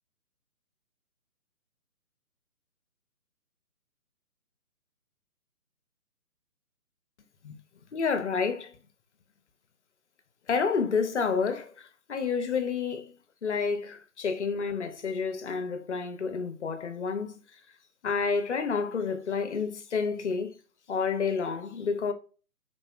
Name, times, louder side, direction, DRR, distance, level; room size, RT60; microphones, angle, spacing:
voice 1, 7.9-8.7 10.5-13.1 13.4-17.4 18.0-20.6 20.9-22.1, left 5 dB, 50° left, 0.5 m, -29 dB
3.7 x 2.0 x 2.3 m
figure-of-eight pair, 150°, 45 cm